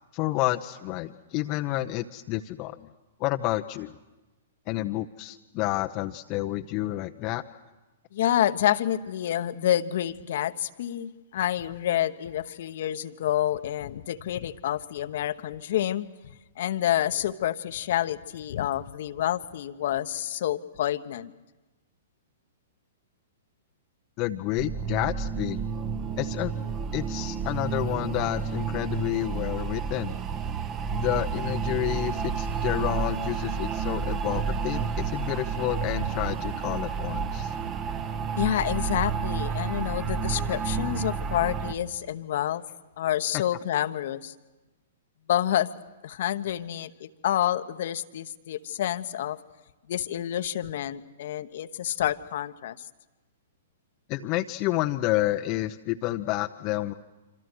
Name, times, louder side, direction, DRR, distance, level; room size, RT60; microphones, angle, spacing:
voice 1, 0.1-2.9 3.2-3.9 4.7-7.4 24.2-25.6 26.2-26.5 26.9-30.2 30.9-37.5 54.1-56.9, left 16 dB, 35° left, 6 dB, 0.8 m, -29 dB
voice 2, 8.1-21.3 38.4-42.6 43.0-44.3 45.3-45.7 46.0-49.4 49.9-52.8, left 11 dB, 55° left, 11 dB, 1.1 m, -28 dB
sound 1, 24.6-41.7, right 6 dB, 30° right, 1.4 m, -30 dB
27.0 x 26.5 x 6.3 m, 1.1 s
figure-of-eight pair, 115°, 0 cm